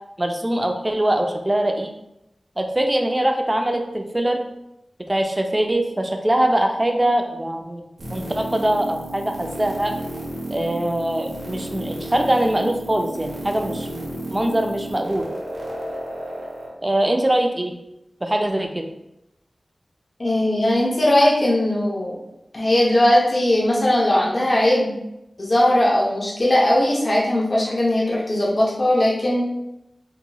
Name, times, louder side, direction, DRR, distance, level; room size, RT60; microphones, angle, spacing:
voice 1, 0.2-1.9 2.6-4.4 5.1-9.9 10.5-14.1 14.3-15.3 16.8-17.8 18.2-18.9, right 1 dB, 25° right, 4 dB, 0.4 m, -22 dB
sound 1, 8.0-16.7, right 1 dB, 70° right, 0.8 m, -32 dB
voice 2, 20.2-22.2 22.5-24.9 25.4-29.5, left 1 dB, 50° left, -5 dB, 0.6 m, -19 dB
2.9 x 2.7 x 2.2 m, 0.87 s
wide cardioid pair, 70°, 0 cm